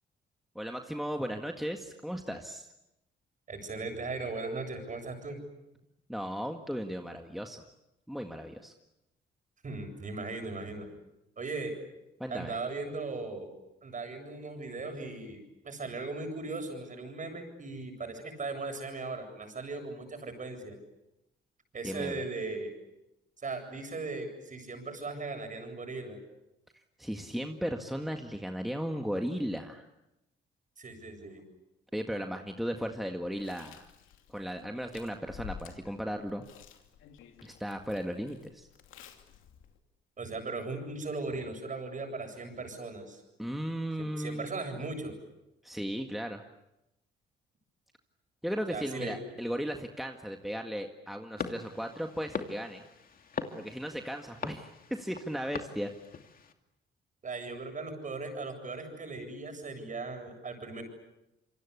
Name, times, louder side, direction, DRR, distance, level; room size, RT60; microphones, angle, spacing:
voice 1, 0.6-2.7 6.1-7.6 8.1-8.7 12.2-12.6 21.8-22.2 27.0-29.9 31.9-33.9 34.3-36.4 37.4-38.7 43.4-44.7 45.6-46.4 48.4-52.8 53.6-55.9, equal, ahead, 4 dB, 1.8 m, -36 dB
voice 2, 3.5-5.4 9.6-10.9 11.4-11.7 12.3-13.5 13.8-20.8 21.7-22.7 23.4-26.2 30.8-31.4 40.2-43.2 44.2-45.1 48.7-49.2 57.2-60.8, right 3 dB, 40° right, 5 dB, 8.0 m, -38 dB
Chewing mastication, 33.2-39.8, left 9 dB, 90° left, 2.7 m, -51 dB
sound 1, 51.4-56.5, left 5 dB, 45° left, 2.5 m, -41 dB
27.5 x 24.0 x 8.4 m, 0.91 s
cardioid pair, 90°, 20 cm